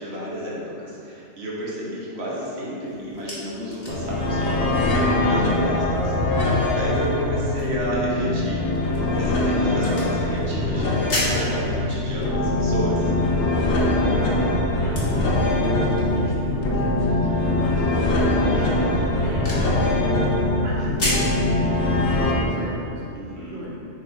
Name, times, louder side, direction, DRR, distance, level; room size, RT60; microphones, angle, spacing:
voice 1, 0.0-13.1 23.1-23.6, equal, 60° right, -6 dB, 1.4 m, -31 dB
sound 1, 2.8-21.4, left 1 dB, 50° left, 1.6 m, -37 dB
sound 2, 3.9-22.3, left 2 dB, 70° left, 1.2 m, -22 dB
voice 2, 14.0-20.3 20.6-23.0 23.4-23.8, right 1 dB, 90° right, -6 dB, 1.7 m, -35 dB
7.3 x 5.3 x 2.5 m, 2.6 s
omnidirectional pair, 1.2 m